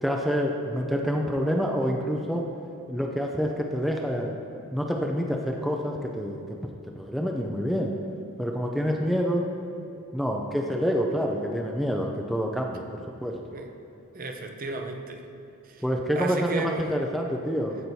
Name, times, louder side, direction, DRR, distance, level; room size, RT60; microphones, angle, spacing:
voice 1, 0.0-2.5 2.9-4.4 4.7-6.4 7.0-7.9 8.4-9.5 10.1-13.4 15.8-17.9, equal, ahead, 0 dB, 0.4 m, -27 dB
voice 2, 14.1-15.2 15.6-15.8 16.1-17.0, right 3 dB, 40° right, 4 dB, 0.6 m, -34 dB
14.5 x 6.0 x 2.7 m, 2.8 s
head